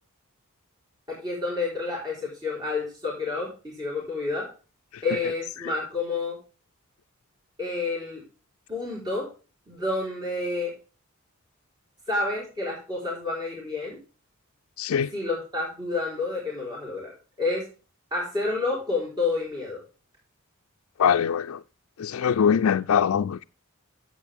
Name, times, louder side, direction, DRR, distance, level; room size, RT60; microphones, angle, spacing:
voice 1, 1.1-4.5 5.0-6.4 7.6-8.2 8.7-9.3 9.7-10.7 12.1-14.0 15.1-17.7 18.1-19.8, left 3 dB, 20° right, 4.2 m, -29 dB
voice 2, 14.8-15.1 21.0-21.6 22.0-23.4, left 7 dB, 80° left, 0.4 m, -23 dB
11.0 x 8.2 x 3.5 m
head